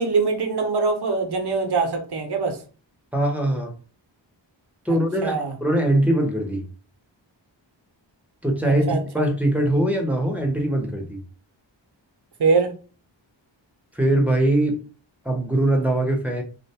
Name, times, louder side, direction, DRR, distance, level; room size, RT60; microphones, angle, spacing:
voice 1, 0.0-2.6 5.2-5.6 8.6-9.3 12.4-12.7, right 4 dB, 60° right, 5 dB, 0.6 m, -23 dB
voice 2, 3.1-3.7 4.8-6.6 8.4-11.2 13.9-14.7 15.2-16.4, right 1 dB, 5° right, 2 dB, 0.7 m, -22 dB
2.5 x 2.2 x 2.8 m, 0.37 s
wide cardioid pair, 45°, 46 cm